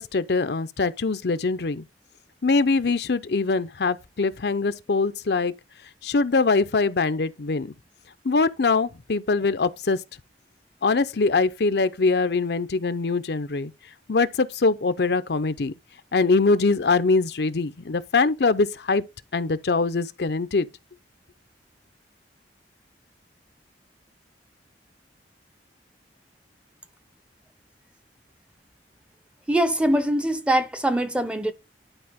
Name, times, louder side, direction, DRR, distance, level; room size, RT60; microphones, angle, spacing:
voice 1, 0.0-1.8 2.4-5.5 6.0-7.7 8.2-10.0 10.8-13.7 14.1-15.7 16.1-19.0 19.3-20.7, left 4 dB, 65° left, 0.6 m, -23 dB
voice 2, 29.5-31.5, right 1 dB, 5° right, 0.7 m, -23 dB
11.5 x 4.9 x 3.6 m
head